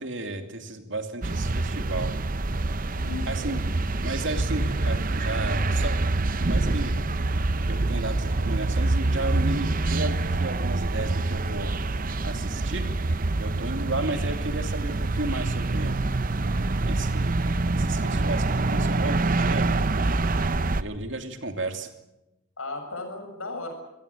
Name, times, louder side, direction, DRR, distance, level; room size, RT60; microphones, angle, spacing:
voice 1, 0.0-2.1 3.3-3.6 4.0-6.9 7.7-11.7 12.2-12.9 13.4-15.9 16.9-19.7 20.8-21.9, right 2 dB, 60° right, 6 dB, 2.9 m, -33 dB
sound 1, 1.2-20.8, right 2 dB, 40° right, 0.7 m, -26 dB
voice 2, 2.9-3.5 22.6-23.7, left 3 dB, 80° left, 5 dB, 6.9 m, -35 dB
25.5 x 17.0 x 8.6 m, 0.91 s
head